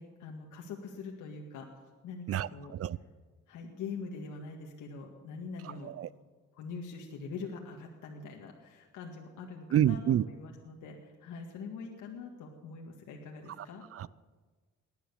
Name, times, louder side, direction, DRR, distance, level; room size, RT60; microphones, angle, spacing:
voice 1, 0.0-1.7 2.0-2.7 3.5-5.9 6.6-13.8, left 4 dB, 80° left, 1 dB, 1.9 m, -43 dB
voice 2, 2.3-3.0 5.6-6.1 9.7-10.2 13.6-13.7 13.9-14.1, right 11 dB, 50° right, 20 dB, 0.5 m, -29 dB
18.5 x 10.5 x 7.1 m, 1.4 s
cardioid pair, 90°, 30 cm